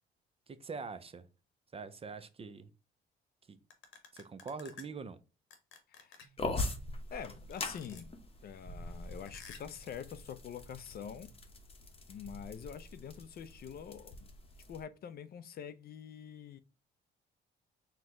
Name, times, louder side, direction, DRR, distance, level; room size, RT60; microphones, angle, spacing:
voice 1, 0.5-1.3 1.7-2.7 3.5-3.6 4.1-5.2, right 4 dB, 30° right, 0.5 m, -44 dB
sound 1, 3.7-4.8 5.5-6.4 7.5-8.0 9.3-9.8, left 6 dB, 80° left, 1.0 m, -52 dB
voice 2, 5.9-6.2 7.1-8.1 8.4-11.3 12.1-14.3 14.7-16.6, left 8 dB, 50° left, 0.4 m, -45 dB
sound 2, 6.4-14.8, left 2 dB, 30° left, 0.8 m, -42 dB
4.3 x 2.2 x 3.6 m
cardioid pair, 90°, 20 cm